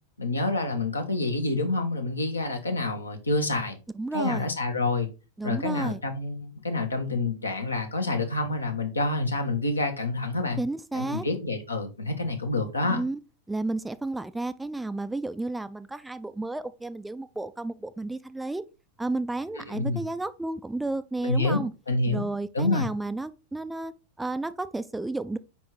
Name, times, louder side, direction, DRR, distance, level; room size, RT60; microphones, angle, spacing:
voice 1, 0.2-3.8 4.1-5.1 5.4-10.6 10.9-13.0 19.6-20.0 21.2-22.2 22.5-22.9, left 2 dB, 80° left, 1.2 m, -28 dB
voice 2, 3.9-4.5 5.4-6.0 10.6-11.3 12.9-13.2 13.5-18.6 19.0-21.7 22.1-23.9 24.2-25.4, right 2 dB, 5° right, 0.4 m, -32 dB
4.9 x 4.2 x 4.6 m
figure-of-eight pair, 90°, 0 cm